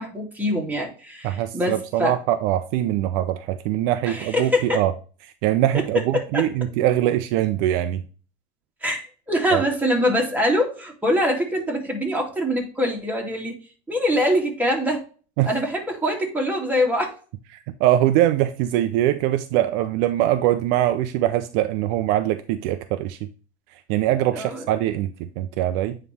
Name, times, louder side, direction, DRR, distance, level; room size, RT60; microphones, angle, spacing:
voice 1, 0.0-2.2 4.1-4.8 6.1-6.5 8.8-13.5 13.9-15.0 15.5-17.1 24.3-24.6, equal, 5° right, 2.4 m, -24 dB
voice 2, 1.2-4.9 5.2-8.0 9.5-9.6 15.4-15.5 17.7-23.3 23.7-26.0, right 13 dB, 60° right, 0.6 m, -22 dB
9.1 x 3.3 x 3.3 m
hypercardioid pair, 100°, 33 cm